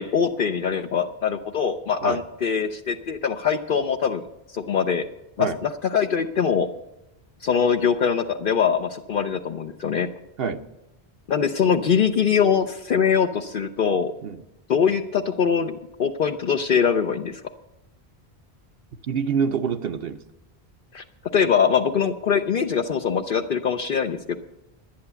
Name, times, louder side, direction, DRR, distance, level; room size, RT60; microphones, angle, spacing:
voice 1, 0.0-4.2 4.5-5.0 5.4-6.7 7.4-10.1 11.3-14.1 14.7-17.4 20.9-21.0 21.3-24.4, left 7 dB, 60° left, 6 dB, 0.8 m, -23 dB
voice 2, 19.1-20.2, right 6 dB, 65° right, 8 dB, 0.9 m, -26 dB
11.0 x 10.5 x 6.8 m, 0.94 s
omnidirectional pair, 1.1 m